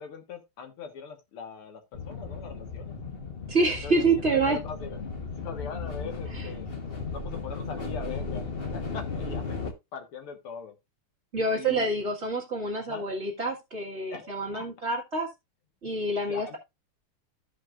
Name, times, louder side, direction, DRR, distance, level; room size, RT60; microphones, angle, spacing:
voice 1, 0.0-3.0 3.8-6.7 7.1-10.7 11.6-11.9 12.8-13.1 14.1-14.7 16.3-16.6, left 6 dB, 80° left, 2.4 m, -41 dB
sound 1, 1.9-9.7, left 4 dB, 35° left, 1.1 m, -35 dB
voice 2, 3.5-4.6 6.3-6.5 11.3-15.3 15.8-16.6, right 2 dB, 30° right, 1.9 m, -27 dB
15.0 x 5.2 x 2.4 m
omnidirectional pair, 2.4 m